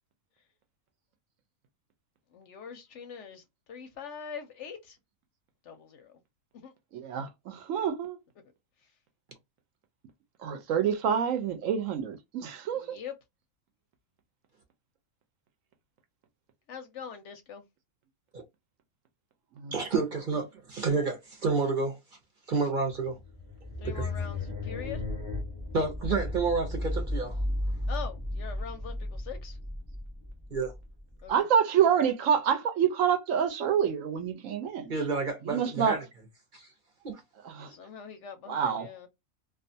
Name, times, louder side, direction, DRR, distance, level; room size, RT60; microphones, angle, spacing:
voice 1, 2.3-5.0 5.6-6.2 6.5-6.7 12.7-13.2 16.7-17.6 23.8-25.0 27.9-29.6 31.2-31.4 37.6-39.1, left 7 dB, 65° left, 0.8 m, -43 dB
voice 2, 6.9-8.2 10.4-13.0 19.6-19.7 31.3-34.9 35.5-36.0 37.6-37.7 38.5-38.9, right 8 dB, 70° right, 0.9 m, -27 dB
voice 3, 19.7-22.0 22.5-23.2 23.8-24.1 25.7-27.4 30.5-30.7 34.9-36.0 36.5-36.7 37.0-37.2, right 4 dB, 45° right, 0.7 m, -30 dB
sound 1, 22.9-31.3, left 1 dB, 5° right, 1.0 m, -34 dB
2.4 x 2.3 x 2.6 m
omnidirectional pair, 1.5 m